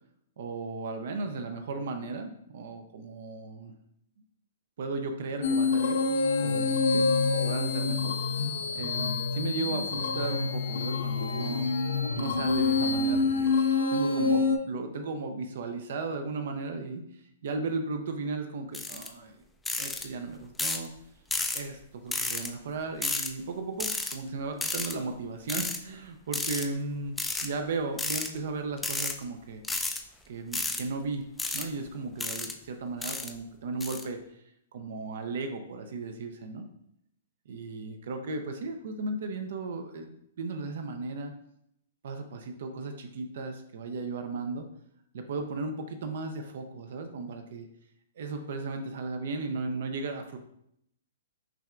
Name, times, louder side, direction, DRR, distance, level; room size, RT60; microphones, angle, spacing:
voice 1, 0.4-3.7 4.8-6.0 6.4-7.0 7.4-8.2 8.7-11.8 12.2-19.4 19.8-20.9 21.5-27.2 27.4-29.6 30.3-31.3 31.5-34.4 34.7-36.7 37.5-41.3 42.0-44.7 45.1-47.7 48.2-50.4, right 3 dB, 65° right, 6 dB, 0.4 m, -35 dB
sound 1, 5.4-14.6, left 4 dB, 75° left, 0.4 m, -27 dB
sound 2, 18.7-19.1 19.7-20.0 20.6-20.9 21.3-21.6 22.1-22.5 23.0-23.3 23.8-24.1 24.6-24.9 25.5-25.8 26.3-26.7 27.2-27.5 28.0-28.3 28.8-29.1 29.6-30.0 30.5-30.8 31.4-31.6 32.2-32.5 33.0-33.3 33.8-34.0, left 2 dB, 5° left, 0.3 m, -31 dB
5.8 x 2.3 x 2.4 m, 0.74 s
hypercardioid pair, 145°, 0 cm